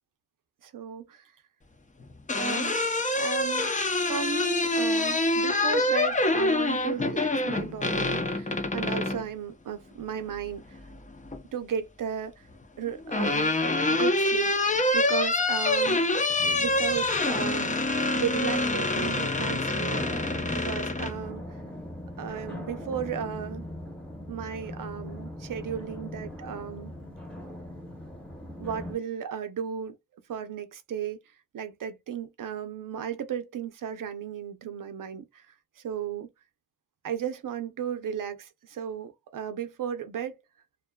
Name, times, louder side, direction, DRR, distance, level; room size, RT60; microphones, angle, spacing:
voice 1, 0.6-1.3 2.4-2.8 3.2-3.7 4.1-10.8 11.5-12.5 12.8-13.6 13.9-14.5 14.9-16.0 16.4-17.8 18.1-20.4 20.6-21.4 22.2-23.7 24.3-26.9 28.6-30.0 30.3-31.2 31.5-35.5 35.8-36.3 37.0-40.3, right 8 dB, 80° right, 0.6 m, -35 dB
sound 1, 2.0-9.2 10.7-11.4 12.6-21.1, left 2 dB, 25° left, 0.6 m, -26 dB
sound 2, 16.4-29.0, left 1 dB, 5° left, 0.9 m, -40 dB
2.6 x 2.3 x 2.2 m
cardioid pair, 60°, 32 cm